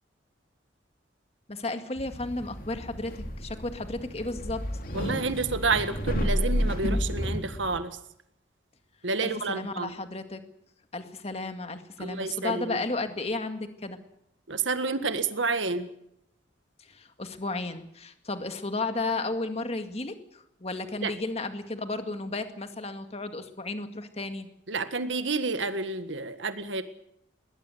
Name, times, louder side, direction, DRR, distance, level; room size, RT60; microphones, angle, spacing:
voice 1, 1.5-4.6 9.2-10.4 10.9-14.0 16.8-24.5, left 2 dB, 35° left, 7 dB, 2.0 m, -33 dB
sound 1, 2.0-7.8, equal, 50° left, 3.1 m, -31 dB
voice 2, 4.9-8.0 9.0-9.9 12.0-12.8 14.5-15.9 21.0-21.1 24.7-26.8, right 4 dB, 85° right, 10 dB, 1.7 m, -29 dB
21.5 x 18.5 x 8.0 m, 0.76 s
head